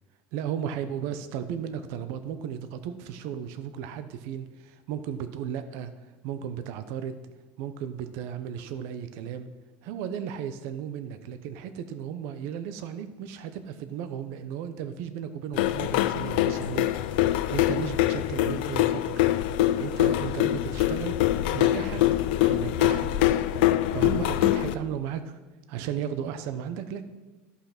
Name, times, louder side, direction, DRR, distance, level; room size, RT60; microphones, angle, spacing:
voice 1, 0.3-5.9 6.2-7.2 7.6-9.5 9.8-16.9 17.3-19.2 19.8-21.2 21.5-22.0 22.4-23.2 23.9-25.4 25.7-27.0, right 9 dB, 60° right, 10 dB, 0.8 m, -35 dB
sound 1, 15.5-24.7, left 14 dB, 80° left, 0.5 m, -24 dB
11.0 x 5.8 x 6.0 m, 1.2 s
cardioid pair, 155°, 5 cm